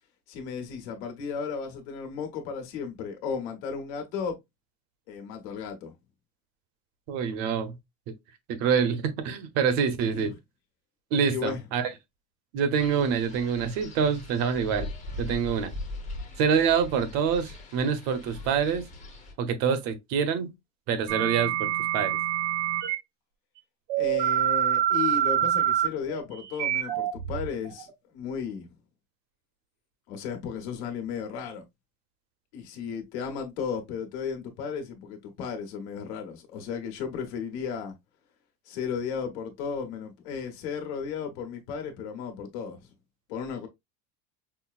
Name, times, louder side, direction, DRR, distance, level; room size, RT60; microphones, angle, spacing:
voice 1, 0.3-4.4 5.1-5.9 10.1-10.3 11.3-11.6 24.0-27.9 28.1-28.7 30.1-31.6 32.5-37.9 38.7-42.9 43.3-43.7, left 6 dB, 75° left, 1.3 m, -34 dB
voice 2, 7.1-7.8 8.5-10.3 11.1-11.9 12.5-14.9 15.2-15.7 16.4-18.9 19.4-20.5 20.9-22.2, right 6 dB, 50° right, 0.8 m, -26 dB
Wind, 12.8-19.3, left 2 dB, 20° left, 0.8 m, -40 dB
sound 1, 21.1-23.0 23.9-27.9, right 11 dB, 75° right, 0.9 m, -26 dB
5.8 x 2.0 x 2.4 m
cardioid pair, 170°, 34 cm